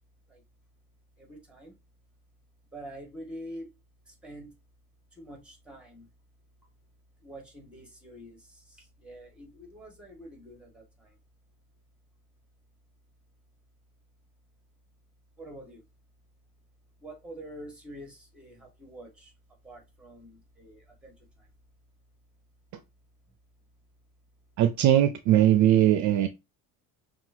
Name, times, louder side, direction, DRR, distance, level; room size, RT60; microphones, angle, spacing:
voice 1, 1.2-1.8 2.7-3.7 4.1-4.5 5.1-6.1 7.2-11.1 15.4-15.8 17.0-19.3 19.6-21.1, right 1 dB, 5° right, 1.6 m, -46 dB
voice 2, 24.6-26.3, right 11 dB, 55° right, 0.5 m, -20 dB
5.8 x 2.5 x 2.7 m
cardioid pair, 125°, 35 cm